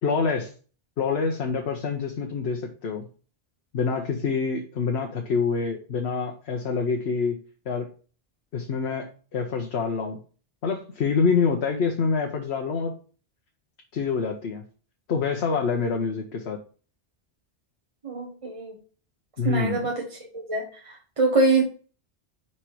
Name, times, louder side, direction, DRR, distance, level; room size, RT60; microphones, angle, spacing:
voice 1, 0.0-0.5 1.0-3.0 3.7-7.4 7.7-7.9 8.5-9.1 9.3-10.2 10.6-12.9 13.9-14.6 15.1-16.6 19.4-19.9, left 5 dB, 70° left, 3 dB, 1.1 m, -26 dB
voice 2, 18.0-18.8 19.4-20.0 20.3-21.6, right 3 dB, 30° right, -1 dB, 1.0 m, -24 dB
5.2 x 4.3 x 4.6 m, 0.38 s
omnidirectional pair, 1.1 m